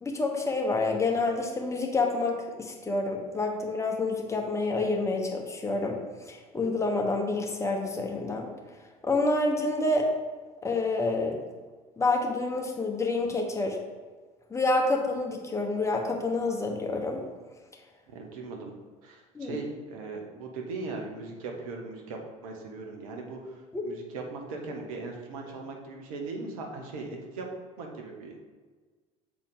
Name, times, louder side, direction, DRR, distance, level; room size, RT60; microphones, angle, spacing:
voice 1, 0.0-6.0 6.3-8.5 9.0-10.1 10.6-11.4 12.0-13.8 14.5-17.2 19.3-19.6 23.7-23.8, left 2 dB, 15° left, 1 dB, 1.1 m, -28 dB
voice 2, 18.1-18.7 19.0-27.5 27.8-28.4, right 3 dB, 70° right, 1 dB, 1.1 m, -39 dB
6.8 x 4.0 x 3.7 m, 1.4 s
figure-of-eight pair, 65°, 19 cm